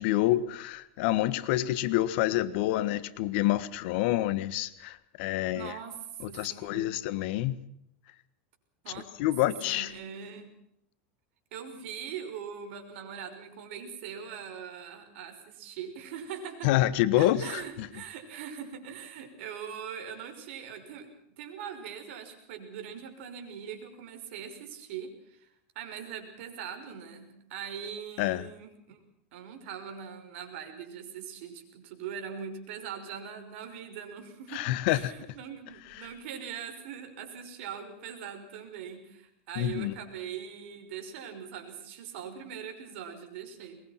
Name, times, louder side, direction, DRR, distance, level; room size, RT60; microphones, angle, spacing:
voice 1, 0.0-5.7 6.2-7.6 9.2-9.9 16.6-17.9 28.2-28.5 34.5-35.1 36.0-36.1 39.6-39.9, left 15 dB, 60° left, 1.4 m, -27 dB
voice 2, 5.5-6.0 6.3-6.9 8.8-9.1 9.4-10.5 11.5-16.7 17.2-25.5 25.7-29.0 29.3-43.8, right 7 dB, 65° right, 5.9 m, -41 dB
22.5 x 21.5 x 5.9 m
supercardioid pair, 145°, 7 cm